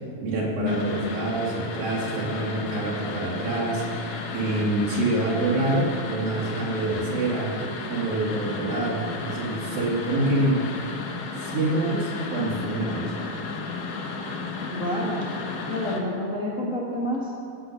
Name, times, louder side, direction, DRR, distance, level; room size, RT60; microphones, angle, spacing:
voice 1, 0.2-7.6 7.9-10.6 11.4-13.1, right 2 dB, 65° right, -7 dB, 4.1 m, -26 dB
sound 1, 0.7-16.0, left 4 dB, 65° left, 2.5 m, -34 dB
voice 2, 14.7-15.2 15.7-17.3, left 1 dB, 45° left, -5 dB, 1.0 m, -28 dB
17.5 x 8.7 x 6.4 m, 2.5 s
omnidirectional pair, 4.4 m